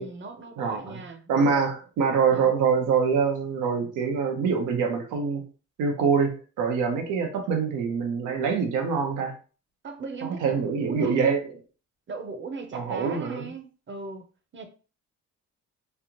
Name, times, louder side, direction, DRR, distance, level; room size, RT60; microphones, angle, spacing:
voice 1, 0.0-1.7 2.3-2.5 9.8-11.4 12.1-14.2 14.5-14.7, right 4 dB, 40° right, 0.8 m, -38 dB
voice 2, 0.6-1.0 1.3-5.4 5.8-9.3 10.2-11.4 12.7-13.5, right 5 dB, 90° right, 0.9 m, -25 dB
3.3 x 2.4 x 2.9 m
cardioid pair, 90°, 30 cm